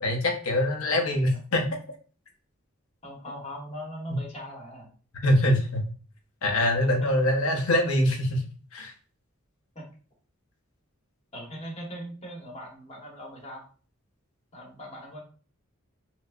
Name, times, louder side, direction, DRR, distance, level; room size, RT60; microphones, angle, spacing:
voice 1, 0.0-1.6 5.2-5.9 6.4-8.4 8.7-8.9, left 1 dB, 75° left, 3 dB, 0.8 m, -24 dB
voice 2, 3.0-4.9 9.7-9.8 11.3-13.7 14.5-15.2, equal, 30° left, -1 dB, 0.9 m, -40 dB
4.5 x 2.1 x 2.4 m, 0.39 s
head